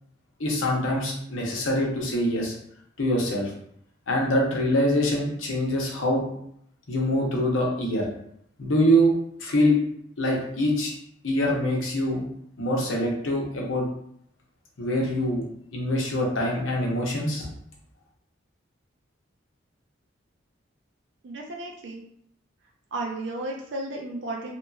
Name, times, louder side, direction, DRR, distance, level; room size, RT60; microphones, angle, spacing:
voice 1, 0.4-2.5 3.0-3.5 4.1-6.3 6.9-8.1 8.6-9.1 9.4-9.8 10.2-10.9 11.2-12.2 12.6-13.8 14.8-15.4 15.7-17.4, equal, 85° left, -1 dB, 0.8 m, -24 dB
voice 2, 21.2-22.0 22.9-24.5, right 2 dB, 65° right, 0 dB, 0.4 m, -33 dB
2.9 x 2.7 x 2.3 m, 0.71 s
head